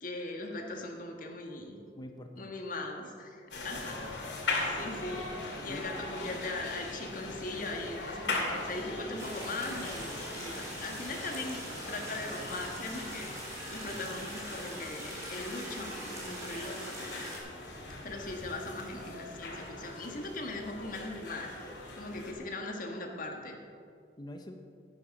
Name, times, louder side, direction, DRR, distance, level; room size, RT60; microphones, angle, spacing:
voice 1, 0.0-1.8 2.4-5.3 5.6-17.2 17.9-23.6, left 2 dB, 50° left, 2 dB, 1.5 m, -40 dB
voice 2, 2.0-2.5 3.8-4.2 5.7-6.0 10.0-10.1 24.2-24.5, left 1 dB, 25° left, 5 dB, 0.6 m, -46 dB
sound 1, 3.5-22.3, left 2 dB, 75° left, 2.2 m, -40 dB
sound 2, 9.2-17.4, right 1 dB, 20° right, 3.0 m, -43 dB
11.5 x 10.0 x 5.3 m, 2.4 s
head